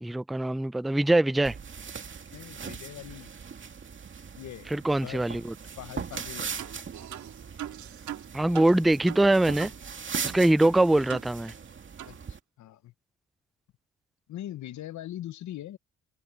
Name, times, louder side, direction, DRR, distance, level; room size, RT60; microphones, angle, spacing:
voice 1, 0.0-1.6 4.7-5.5 8.3-9.7 10.2-11.5, right 1 dB, ahead, 0.3 m, -23 dB
sound 1, 1.4-12.4, right 6 dB, 40° right, 2.3 m, -40 dB
voice 2, 2.3-3.3 4.4-4.7 5.0-5.3 5.8-6.6 12.1-12.9 14.3-15.8, left 13 dB, 70° left, 0.9 m, -41 dB
sound 2, 6.1-6.3 6.6-9.8 10.1-10.2 10.6-11.7 12.0-12.2, right 11 dB, 70° right, 2.4 m, -42 dB
cardioid pair, 90°, 30 cm